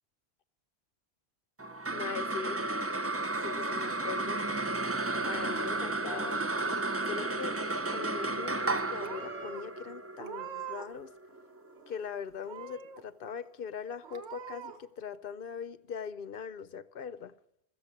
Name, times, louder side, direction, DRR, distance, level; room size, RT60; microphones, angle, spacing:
sound 1, 1.6-12.2, right 2 dB, 20° right, 0.4 m, -33 dB
voice 1, 1.9-2.6 3.4-4.4 5.2-6.5 7.1-7.5 7.9-11.1 11.9-17.3, left 7 dB, 60° left, 15 dB, 0.8 m, -41 dB
Purr / Meow, 6.2-7.1 7.4-7.9 8.6-8.7 9.0-9.6 10.1-11.0 11.3-12.0 12.4-13.0 13.5-13.6 14.0-14.8, right 6 dB, 90° right, 1.4 m, -44 dB
15.0 x 7.7 x 9.6 m, 0.78 s
omnidirectional pair, 1.1 m